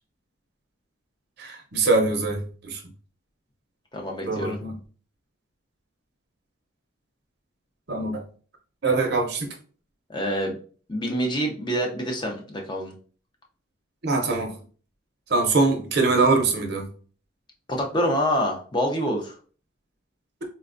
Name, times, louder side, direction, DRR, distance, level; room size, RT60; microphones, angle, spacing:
voice 1, 1.4-2.8 4.3-4.7 7.9-8.2 8.8-9.5 14.0-14.6 15.3-16.9, right 3 dB, 50° right, 0.6 m, -23 dB
voice 2, 3.9-4.6 10.1-10.6 10.9-12.9 17.7-19.4, equal, 20° left, 0.5 m, -26 dB
4.1 x 2.2 x 2.4 m
head